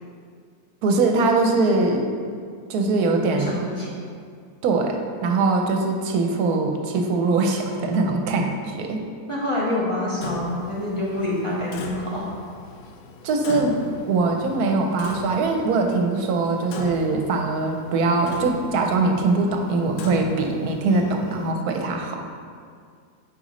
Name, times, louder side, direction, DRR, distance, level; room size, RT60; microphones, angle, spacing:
voice 1, 0.8-2.0 2.7-3.5 4.6-9.0 13.2-13.8 14.0-22.2, right 3 dB, 80° right, 3 dB, 1.1 m, -22 dB
voice 2, 3.3-4.0 9.3-12.3, left 1 dB, 25° left, -7 dB, 0.9 m, -26 dB
Clock, 10.2-21.5, left 2 dB, 70° left, 1.0 m, -37 dB
7.7 x 5.2 x 3.1 m, 2.1 s
omnidirectional pair, 1.6 m